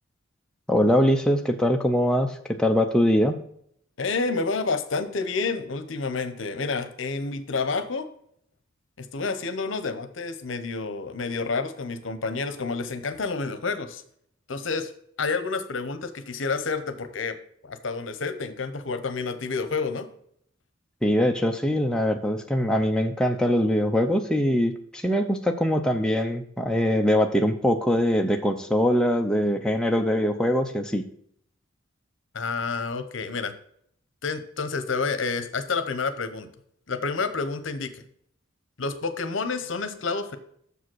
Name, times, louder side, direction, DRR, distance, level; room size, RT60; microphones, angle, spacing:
voice 1, 0.7-3.4 21.0-31.1, equal, 5° left, 3 dB, 0.5 m, -22 dB
voice 2, 4.0-8.1 9.0-14.0 14.5-14.9 15.2-17.4 17.6-20.1 32.3-33.5 34.2-36.5 36.9-38.0 38.8-40.4, left 4 dB, 65° left, 10 dB, 0.8 m, -29 dB
6.7 x 5.1 x 6.1 m, 0.67 s
head